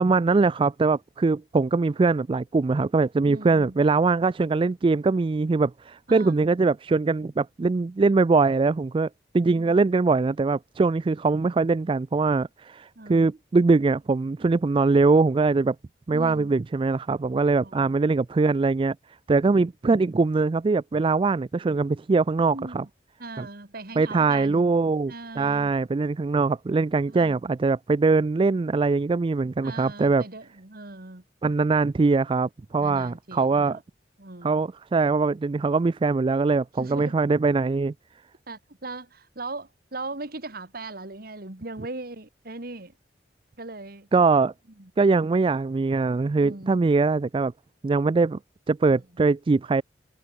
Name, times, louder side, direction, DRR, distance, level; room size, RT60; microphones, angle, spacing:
voice 1, 0.0-9.1 9.3-15.8 16.1-19.0 19.3-22.8 23.4-23.5 24.0-30.2 31.4-33.8 34.4-37.9 44.1-44.5 45.0-47.5 47.8-48.4 48.7-49.8, right 3 dB, 30° right, 0.3 m, -22 dB
voice 2, 3.2-3.8 6.1-6.3 9.5-9.8 13.0-13.3 16.1-16.6 17.6-18.0 19.5-19.6 22.5-22.9 23.2-24.7 25.1-25.7 27.1-27.4 29.6-31.2 32.8-33.8 34.2-34.6 36.8-37.2 38.5-42.9 43.6-44.1 44.8-44.9 46.4-46.9 48.9-49.0, right 2 dB, 60° right, 2.5 m, -39 dB
head